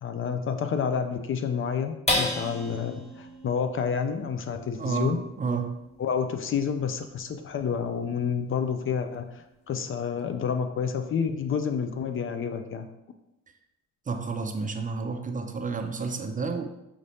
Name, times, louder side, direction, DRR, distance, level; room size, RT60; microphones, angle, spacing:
voice 1, 0.0-5.2 6.0-9.3 9.7-12.9, left 6 dB, 45° left, 7 dB, 0.4 m, -29 dB
sound 1, 2.1-8.8 9.2-9.3 9.7-10.2, left 1 dB, 20° left, 1.0 m, -35 dB
voice 2, 4.8-5.8 14.1-16.6, right 4 dB, 25° right, 5 dB, 0.4 m, -30 dB
5.0 x 2.7 x 3.3 m, 0.89 s
cardioid pair, 90°, 30 cm